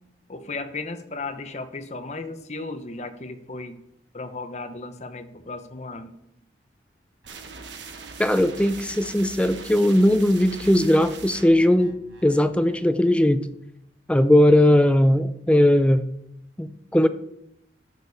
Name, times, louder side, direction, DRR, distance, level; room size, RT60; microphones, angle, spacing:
voice 1, 0.3-3.8 4.1-6.1, left 3 dB, 35° left, 0.9 m, -35 dB
sound 1, 7.2-12.9, right 4 dB, 80° right, 1.2 m, -42 dB
voice 2, 8.2-11.9 12.2-13.5 14.1-16.1 16.6-17.1, left 1 dB, 5° left, 0.4 m, -18 dB
13.0 x 6.7 x 4.1 m
head